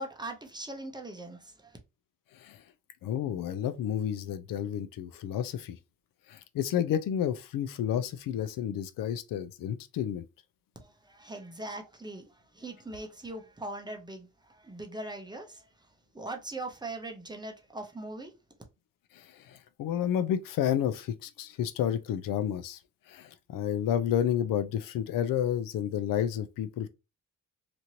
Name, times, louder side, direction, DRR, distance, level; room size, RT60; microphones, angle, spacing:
voice 1, 0.0-1.8 10.8-15.9 16.1-18.3, right 2 dB, 15° right, 0.6 m, -41 dB
voice 2, 3.0-5.8 6.3-10.2 19.1-22.8 23.1-26.9, left 10 dB, 70° left, 0.5 m, -30 dB
3.0 x 2.5 x 2.7 m
cardioid pair, 125°, 34 cm